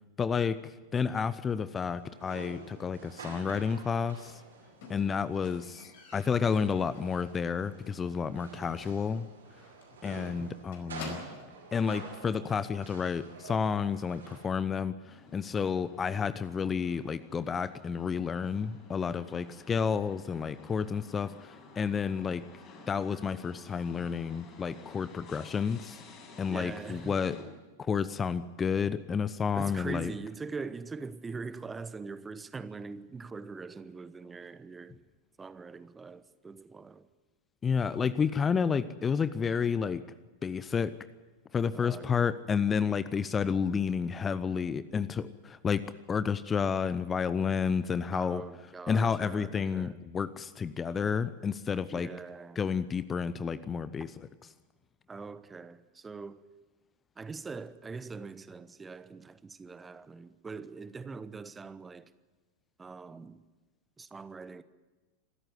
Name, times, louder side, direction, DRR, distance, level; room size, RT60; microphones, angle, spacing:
voice 1, 0.2-4.4 4.9-9.3 10.0-11.2 11.7-22.4 22.9-26.0 26.4-27.4 27.8-30.1 37.6-40.0 40.4-40.9 41.5-45.8 46.1-48.4 48.9-52.1 52.6-54.1, left 6 dB, 20° left, 0.7 m, -30 dB
sound 1, 2.0-14.5, right 4 dB, 70° right, 6.6 m, -49 dB
Squeak, 4.8-7.6 7.9-8.3 8.6-8.7 9.1-9.2 9.4-9.6 9.8-11.6 12.5-12.6, left 4 dB, 55° left, 4.8 m, -48 dB
sound 2, 15.1-27.4, left 3 dB, 35° left, 6.4 m, -53 dB
voice 2, 26.5-27.2 29.5-35.0 35.4-37.1 41.7-42.3 48.1-50.0 51.9-52.6 55.1-56.4 57.2-62.1 62.8-63.4 64.0-64.6, right 4 dB, 15° right, 1.0 m, -42 dB
26.0 x 14.0 x 9.5 m
figure-of-eight pair, 90°, 0 cm